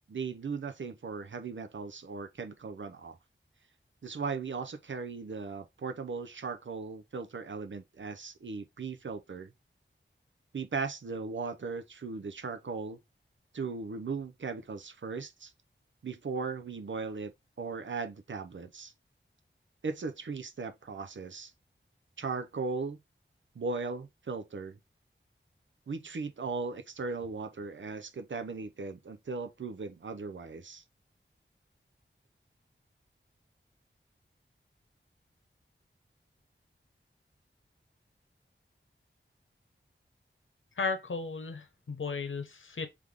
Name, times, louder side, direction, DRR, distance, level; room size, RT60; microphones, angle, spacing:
voice 1, 0.0-3.2 4.0-9.5 10.5-13.0 13.5-15.5 16.0-17.3 17.6-18.9 19.8-21.5 22.2-23.0 23.5-24.8 25.9-30.8, right 4 dB, 70° right, 0.6 m, -37 dB
voice 2, 40.8-42.9, left 4 dB, 75° left, 0.9 m, -35 dB
3.5 x 3.4 x 3.5 m
wide cardioid pair, 75°, 20 cm